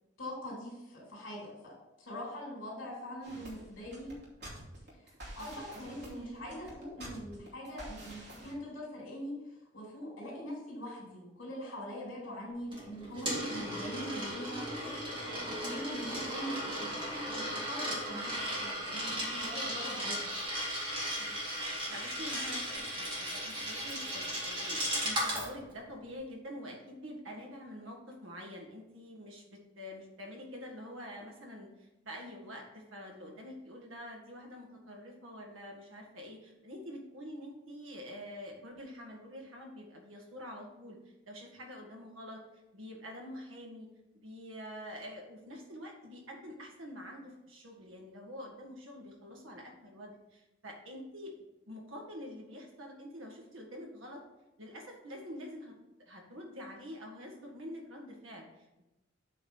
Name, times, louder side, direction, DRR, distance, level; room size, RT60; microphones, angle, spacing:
voice 1, 0.2-1.7 2.0-4.1 5.3-9.3 9.7-14.6 15.3-20.3, equal, 75° left, -4 dB, 3.2 m, -43 dB
sound 1, 3.2-8.5, right 1 dB, 55° right, 2.5 m, -49 dB
voice 2, 5.7-6.5 21.2-21.4 21.9-42.4 42.7-43.9 44.1-51.3 51.7-54.2 54.6-55.7 56.1-58.8, equal, 85° right, 1 dB, 1.9 m, -46 dB
Coin (dropping), 12.7-25.5, equal, 25° right, 2.3 m, -36 dB
8.4 x 4.2 x 5.5 m, 0.96 s
head